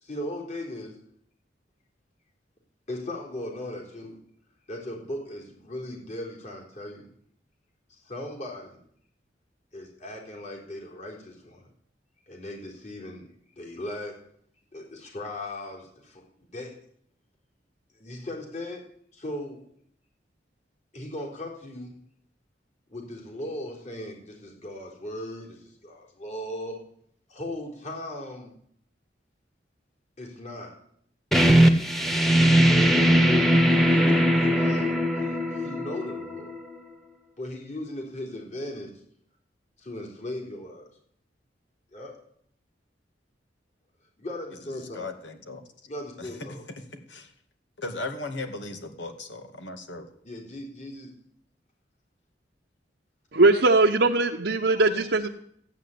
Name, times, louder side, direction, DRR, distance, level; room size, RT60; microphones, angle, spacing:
voice 1, 0.0-1.0 2.9-4.2 4.7-7.1 7.9-8.8 9.7-11.7 12.3-13.3 13.6-14.1 14.7-16.7 18.0-18.8 19.1-19.7 20.9-21.9 22.9-26.8 27.3-28.5 30.2-30.7 32.3-36.5 37.4-38.9 39.8-40.9 41.9-42.1 44.2-45.1 45.9-46.6 50.2-51.1, left 1 dB, 40° left, 3.8 m, -37 dB
sound 1, 31.3-36.8, equal, ahead, 1.4 m, -20 dB
voice 2, 44.7-45.6 46.2-46.3 46.9-47.3 47.8-50.1, left 2 dB, 85° left, 2.4 m, -37 dB
voice 3, 53.3-55.3, right 2 dB, 65° right, 1.0 m, -20 dB
15.0 x 9.1 x 8.5 m
head